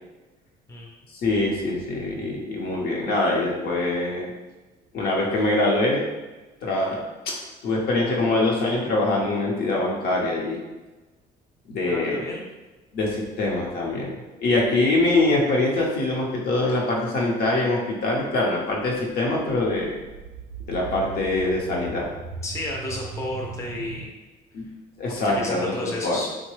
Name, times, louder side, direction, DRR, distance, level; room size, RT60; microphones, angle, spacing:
voice 1, 1.2-4.3 4.9-6.0 6.6-7.3 7.6-10.6 11.7-12.2 12.9-14.1 14.4-20.0 20.7-22.1 24.5-24.7 25.0-26.2, left 2 dB, 70° left, -2 dB, 0.8 m, -24 dB
voice 2, 11.9-12.4 22.4-24.1 25.1-26.3, left 1 dB, 15° left, -2 dB, 0.5 m, -32 dB
sound 1, 18.7-24.1, right 4 dB, 90° right, 0.4 m, -39 dB
3.2 x 2.1 x 3.1 m, 1.2 s
cardioid pair, 110°, 17 cm